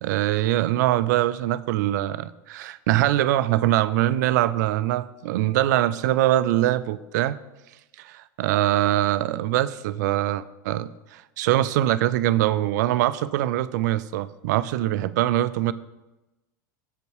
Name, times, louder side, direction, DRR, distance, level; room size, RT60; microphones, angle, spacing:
voice 1, 0.0-7.4 8.0-15.7, right 14 dB, 60° right, 16 dB, 0.4 m, -23 dB
7.9 x 5.3 x 6.3 m, 1.0 s
figure-of-eight pair, 85°, 11 cm